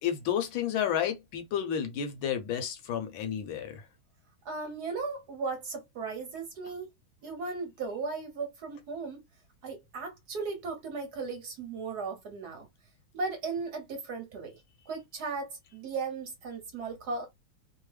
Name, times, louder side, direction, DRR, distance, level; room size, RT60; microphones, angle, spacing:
voice 1, 0.0-3.8, left 9 dB, 75° left, 1.4 m, -31 dB
voice 2, 4.4-6.9 7.2-9.2 9.6-12.7 13.1-14.6 14.9-17.3, right 4 dB, 60° right, 1.1 m, -36 dB
3.5 x 2.0 x 3.2 m
omnidirectional pair, 2.3 m